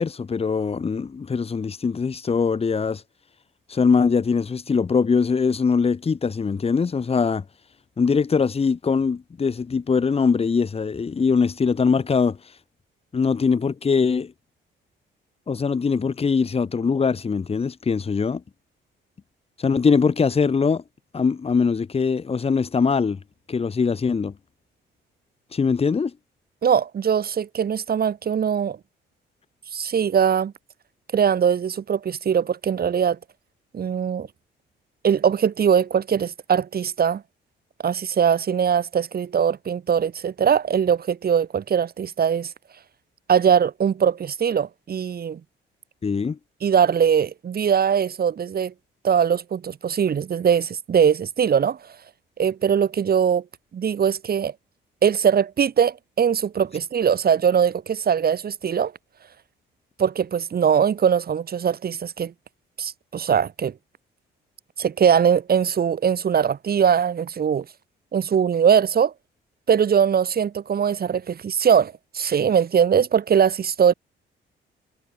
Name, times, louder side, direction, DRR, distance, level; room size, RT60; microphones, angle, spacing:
voice 1, 0.0-3.0 3.7-7.4 8.0-12.4 13.1-14.3 15.5-18.4 19.6-20.8 21.1-23.2 23.5-24.3 25.5-26.1 46.0-46.4, left 5 dB, 30° left, 1.3 m, -22 dB
voice 2, 26.6-28.8 29.7-30.5 31.1-33.2 33.7-34.3 35.0-37.2 37.8-42.5 43.3-45.4 46.6-48.7 49.0-51.8 52.4-53.4 53.7-54.5 55.0-58.9 60.0-62.3 62.8-63.7 64.8-67.6 68.1-69.1 69.7-73.9, right 7 dB, 50° right, 2.6 m, -21 dB
cardioid pair, 90°, 20 cm